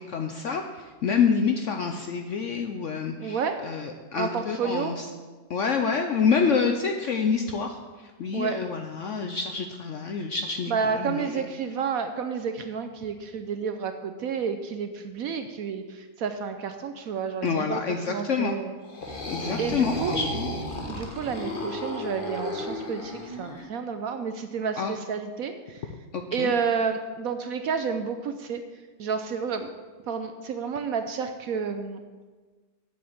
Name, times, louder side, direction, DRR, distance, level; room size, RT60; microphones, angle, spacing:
voice 1, 0.0-5.1 5.5-11.4 17.4-18.6 19.3-20.6 24.8-24.9 26.1-26.5, left 6 dB, 65° left, 5 dB, 0.7 m, -27 dB
voice 2, 3.2-3.6 4.1-5.0 8.3-8.6 10.7-17.8 18.1-18.8 19.6-20.2 20.9-25.8 26.3-28.6 29.0-29.7 30.1-32.0, right 6 dB, 65° right, 8 dB, 0.9 m, -30 dB
sound 1, 18.8-23.6, left 1 dB, 35° left, 1.3 m, -33 dB
7.7 x 6.6 x 8.0 m, 1.4 s
omnidirectional pair, 1.9 m